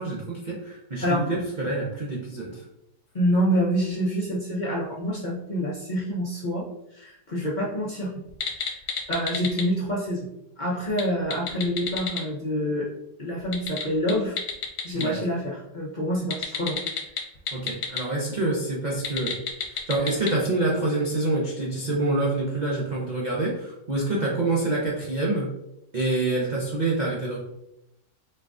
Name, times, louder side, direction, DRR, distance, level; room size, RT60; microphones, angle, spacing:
voice 1, 0.0-2.6 15.0-15.2 17.5-19.4 19.7-25.5 25.9-27.4, right 2 dB, 75° right, -4 dB, 0.4 m, -26 dB
voice 2, 3.1-6.6 6.9-8.2 8.6-8.8 9.1-10.3 10.6-12.9 13.2-14.4 14.8-16.8, equal, 45° left, -5 dB, 0.6 m, -27 dB
sound 1, 8.3-9.6 10.9-12.2 13.4-15.1 16.3-18.0 18.9-20.3, left 6 dB, 70° left, 1.3 m, -30 dB
4.4 x 2.5 x 3.5 m, 0.83 s
omnidirectional pair, 1.8 m